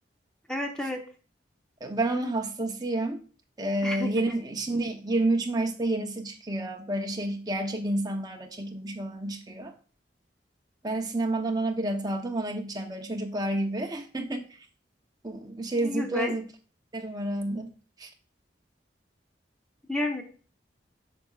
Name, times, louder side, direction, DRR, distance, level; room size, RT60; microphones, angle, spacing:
voice 1, 0.5-1.0 3.8-4.4 15.8-16.4 19.9-20.2, left 1 dB, 5° left, 3 dB, 0.8 m, -31 dB
voice 2, 1.8-3.2 3.6-9.7 10.8-14.5 15.2-16.4 16.9-17.7 18.0-18.1, right 2 dB, 20° right, 3 dB, 0.8 m, -29 dB
8.4 x 5.9 x 2.4 m, 0.40 s
head